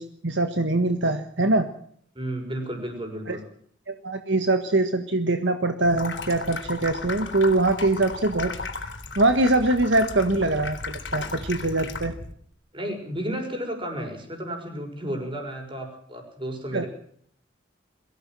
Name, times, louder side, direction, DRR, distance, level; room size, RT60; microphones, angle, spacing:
voice 1, 0.0-1.7 3.3-3.4 3.9-8.5 9.1-12.1 16.7-16.8, right 2 dB, 70° right, 7 dB, 1.6 m, -23 dB
voice 2, 2.1-3.4 12.7-16.9, equal, 25° right, 3 dB, 6.1 m, -32 dB
Water tap faucet / Sink (filling or washing), 5.8-12.3, left 3 dB, 65° left, 3.5 m, -35 dB
22.5 x 16.0 x 7.7 m, 0.62 s
head